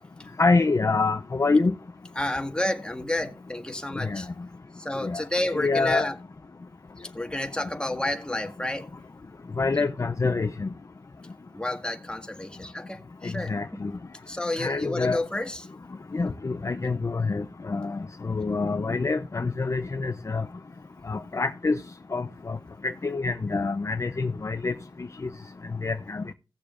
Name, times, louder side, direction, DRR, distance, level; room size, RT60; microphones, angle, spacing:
voice 1, 0.4-1.7 4.0-4.2 5.0-5.2 5.5-6.1 9.6-10.7 13.5-13.9 14.6-15.2 16.1-20.4 21.1-21.8 22.1-22.6 22.8-24.7 25.8-26.2, left 3 dB, 35° left, 0.6 m, -26 dB
voice 2, 2.1-4.3 4.8-6.2 7.0-8.9 11.5-13.8 14.3-15.7, left 1 dB, 10° left, 1.7 m, -30 dB
17.5 x 6.8 x 2.5 m
wide cardioid pair, 85°, 8 cm